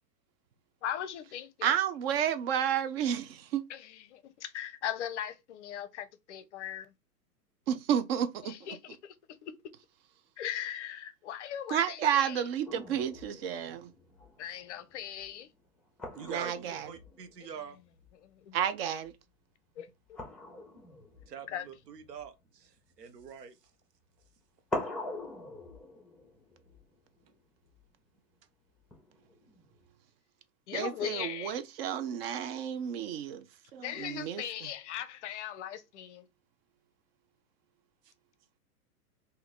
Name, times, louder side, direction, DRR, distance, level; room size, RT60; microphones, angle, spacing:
voice 1, 0.8-1.8 3.7-6.9 8.4-9.5 10.4-12.4 14.4-15.5 18.2-18.6 19.8-20.2 21.5-21.6 30.7-31.6 33.8-36.3, left 10 dB, 50° left, 0.6 m, -39 dB
voice 2, 1.6-3.6 7.7-8.5 11.7-13.9 16.2-16.9 18.5-19.1 30.7-33.4 33.7-34.4, right 9 dB, 40° right, 0.5 m, -31 dB
sound 1, 12.6-18.5 18.8-19.2 20.1-23.4 24.2-24.3 24.7-27.9 28.9-29.9, left 2 dB, ahead, 0.7 m, -44 dB
voice 3, 16.1-16.5 16.8-17.8 21.3-23.6, right 6 dB, 80° right, 0.8 m, -44 dB
2.8 x 2.6 x 4.0 m
hypercardioid pair, 110°, 48 cm